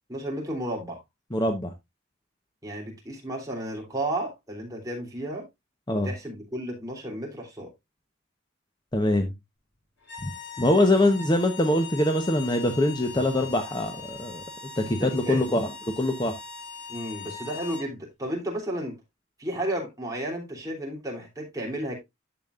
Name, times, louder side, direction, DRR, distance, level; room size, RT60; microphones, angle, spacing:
voice 1, 0.1-1.0 2.6-5.4 5.9-7.7 15.0-15.4 16.9-18.9 19.4-21.9, right 1 dB, 15° right, 3.0 m, -33 dB
voice 2, 1.3-1.7 5.9-6.1 8.9-9.3 10.2-10.3 10.6-14.4 14.8-15.7 16.0-16.4, left 1 dB, 20° left, 0.9 m, -23 dB
sound 1, 10.0-17.9, left 6 dB, 60° left, 3.8 m, -41 dB
10.5 x 7.3 x 2.4 m
head